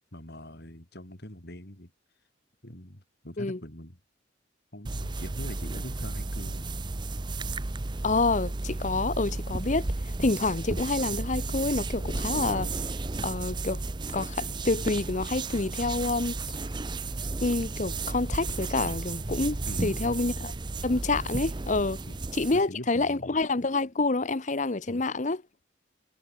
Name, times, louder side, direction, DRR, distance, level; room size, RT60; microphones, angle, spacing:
voice 1, 0.1-1.9 2.6-4.0 4.7-6.7 19.7-20.3 22.1-22.2 22.5-23.4 24.9-25.0, left 1 dB, 55° left, 5.5 m, -43 dB
sound 1, 4.8-22.6, right 3 dB, 25° right, 0.6 m, -33 dB
voice 2, 8.0-13.8 14.1-16.3 17.4-20.5 20.8-22.0 22.3-25.4, left 3 dB, 40° left, 0.9 m, -28 dB
head